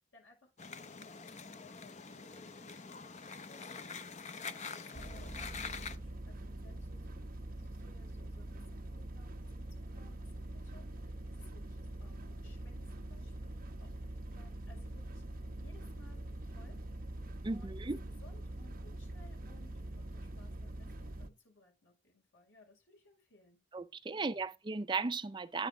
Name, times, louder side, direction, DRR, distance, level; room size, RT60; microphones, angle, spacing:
voice 1, 0.1-1.1 2.1-3.9 4.3-13.5 13.8-14.0 14.3-17.1 17.5-23.6 24.1-24.6, left 2 dB, 75° left, 6.2 m, -63 dB
sound 1, 0.6-6.0, left 5 dB, 35° left, 0.7 m, -45 dB
washing mashine light, 4.9-21.3, right 1 dB, 45° right, 1.0 m, -44 dB
voice 2, 17.4-18.0 23.7-25.7, right 3 dB, 25° right, 0.4 m, -36 dB
9.6 x 9.3 x 3.9 m
head